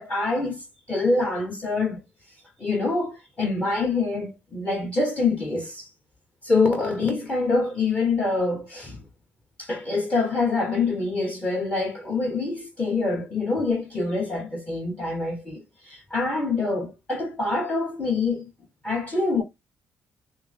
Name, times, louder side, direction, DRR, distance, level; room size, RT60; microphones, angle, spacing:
voice 1, 0.0-2.0 2.6-5.9 6.4-9.0 9.6-18.5 18.8-19.4, left 3 dB, 25° left, 1.6 m, -25 dB
5.7 x 2.2 x 3.5 m
cardioid pair, 75°, 5 cm